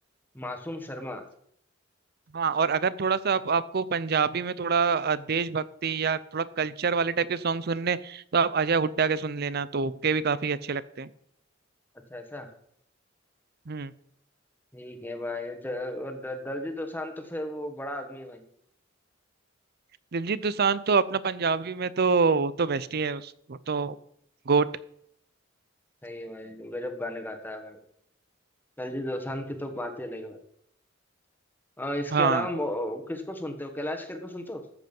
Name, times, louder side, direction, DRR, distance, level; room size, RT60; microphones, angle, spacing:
voice 1, 0.3-1.2 12.1-12.5 14.7-18.4 26.0-27.8 28.8-30.4 31.8-34.6, left 1 dB, 10° left, 6 dB, 1.4 m, -34 dB
voice 2, 2.3-11.1 13.7-13.9 20.1-23.9 24.5-24.7 32.1-32.5, right 5 dB, 50° right, 17 dB, 0.6 m, -26 dB
13.5 x 7.8 x 5.4 m, 0.70 s
head